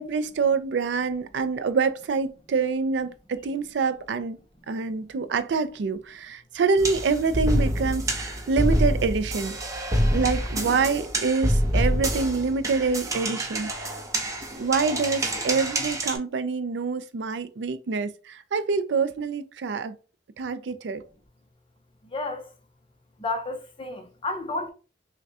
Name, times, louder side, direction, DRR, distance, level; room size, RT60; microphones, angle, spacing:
voice 1, 0.0-4.4 4.7-9.6 10.1-14.0 14.6-19.9 20.4-21.0, right 4 dB, 70° right, 0.4 m, -26 dB
sound 1, 6.8-16.2, equal, 20° right, 0.6 m, -27 dB
voice 2, 22.0-22.5 23.2-24.7, left 2 dB, 30° left, 0.7 m, -31 dB
5.8 x 2.2 x 2.7 m
head